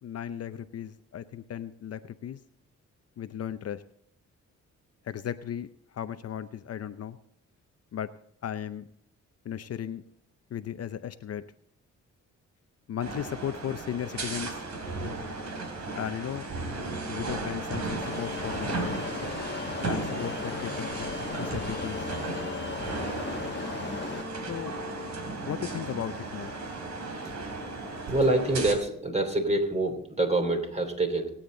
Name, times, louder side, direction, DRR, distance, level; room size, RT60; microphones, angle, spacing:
voice 1, 0.0-2.4 3.2-3.8 5.0-7.2 7.9-8.1 8.4-8.9 9.4-10.0 10.5-11.4 12.9-14.6 15.9-16.5 17.1-19.0 19.9-22.0 24.5-24.7 25.4-26.5, left 9 dB, 55° left, 11 dB, 0.7 m, -36 dB
sound 1, 13.0-28.7, right 2 dB, 65° right, 3.2 m, -35 dB
sound 2, 18.0-24.2, left 5 dB, 35° left, 1.3 m, -37 dB
voice 2, 28.1-31.3, right 2 dB, 20° right, 5 dB, 3.1 m, -26 dB
26.0 x 8.7 x 3.9 m, 0.65 s
cardioid pair, 85°, 30 cm